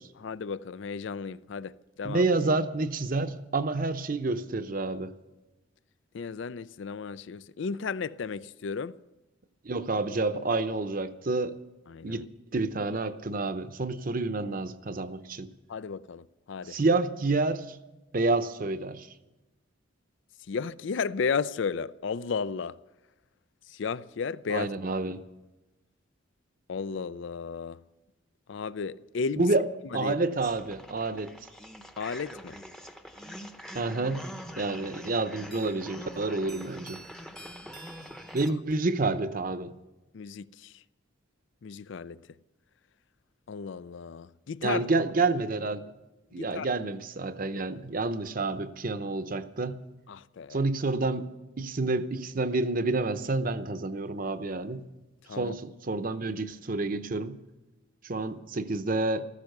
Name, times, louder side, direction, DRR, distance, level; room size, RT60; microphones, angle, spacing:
voice 1, 0.2-1.7 2.0-2.2 6.1-8.9 11.9-12.2 15.7-16.8 20.5-22.8 23.7-24.7 26.7-27.8 28.5-29.5 29.9-30.1 32.0-32.6 40.1-40.7 41.6-42.2 43.5-44.8 46.4-46.7 50.1-50.6 55.3-55.6, left 5 dB, 65° left, 0.4 m, -34 dB
voice 2, 2.0-5.1 9.6-11.5 12.0-12.2 12.5-15.5 16.6-17.8 18.1-19.1 24.5-25.2 29.4-29.7 29.9-31.3 33.7-34.2 34.6-37.0 38.3-39.7 44.6-45.8 46.3-49.8 50.5-51.3 51.6-54.8 55.3-57.4 58.0-59.3, right 3 dB, 45° right, 0.7 m, -29 dB
sound 1, 30.4-38.5, equal, 5° left, 0.8 m, -44 dB
15.0 x 14.0 x 6.6 m
head